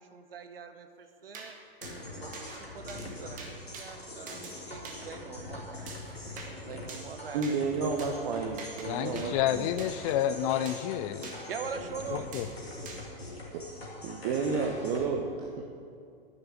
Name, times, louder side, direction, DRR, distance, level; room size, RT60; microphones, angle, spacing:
voice 1, 0.0-1.6 2.2-7.6 11.5-12.3, right 6 dB, 70° right, 8 dB, 1.1 m, -43 dB
sound 1, 1.3-1.5 1.8-1.9 2.3-2.6 2.9-3.1 3.4-3.9 4.3-4.5 4.8-5.0 5.9-6.5 6.9-7.1 7.4-7.6 8.0-8.1 8.6-8.9 9.1-9.3 9.8-10.1 10.6-10.9 11.2-11.4 12.3-12.5 12.8-13.0, right 4 dB, 25° right, 1.7 m, -44 dB
sound 2, 1.8-15.0, left 1 dB, 85° left, 2.3 m, -43 dB
voice 2, 7.3-9.7 13.5-13.6 14.0-15.7, right 4 dB, 45° right, 2 dB, 1.0 m, -31 dB
voice 3, 8.9-11.3 12.3-12.5, left 11 dB, 35° left, 12 dB, 0.4 m, -29 dB
10.5 x 6.7 x 8.0 m, 2.4 s
figure-of-eight pair, 100°, 30 cm